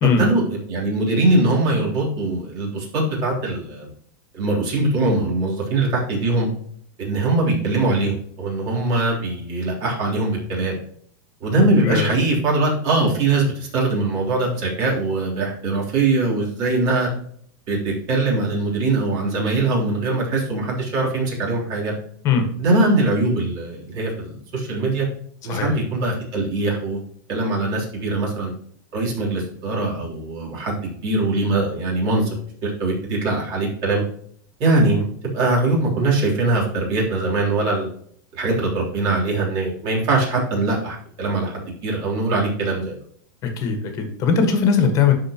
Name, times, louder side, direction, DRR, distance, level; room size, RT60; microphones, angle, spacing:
voice 1, 0.2-3.9 4.3-6.5 7.0-10.8 11.4-17.1 17.7-21.9 22.6-25.1 25.4-27.0 27.3-28.5 28.9-32.3 32.6-34.0 34.6-37.9 38.3-42.9, right 2 dB, 40° right, -4 dB, 3.5 m, -22 dB
voice 2, 11.6-12.1 22.2-22.5 25.5-25.7 43.4-45.1, left 6 dB, 30° left, 5 dB, 1.6 m, -19 dB
12.5 x 4.7 x 3.0 m, 0.62 s
supercardioid pair, 155°, 11 cm